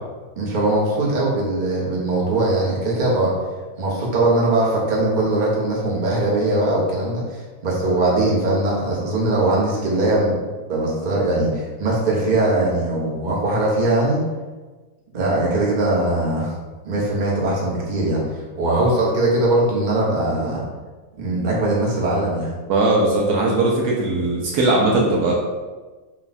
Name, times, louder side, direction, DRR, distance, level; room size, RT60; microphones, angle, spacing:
voice 1, 0.4-3.3 3.8-10.3 10.7-14.2 15.1-16.5 16.8-18.2 18.6-20.6 21.2-22.5, right 2 dB, 35° right, -5 dB, 0.9 m, -20 dB
voice 2, 22.7-25.3, right 2 dB, 70° right, -2 dB, 1.1 m, -19 dB
4.4 x 2.3 x 4.0 m, 1.3 s
omnidirectional pair, 1.9 m